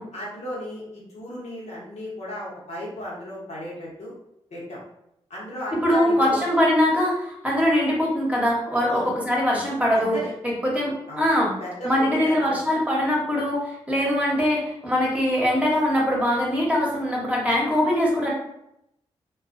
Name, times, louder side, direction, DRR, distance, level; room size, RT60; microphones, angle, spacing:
voice 1, 0.1-4.1 4.5-4.8 5.3-6.4 8.9-9.1 9.9-10.3 11.1-11.3 11.6-12.5, equal, 65° left, -5 dB, 1.0 m, -35 dB
voice 2, 5.7-10.2 10.4-11.5 11.8-18.3, left 1 dB, 10° right, -4 dB, 1.0 m, -22 dB
2.3 x 2.3 x 2.6 m, 0.81 s
supercardioid pair, 40°, 12 cm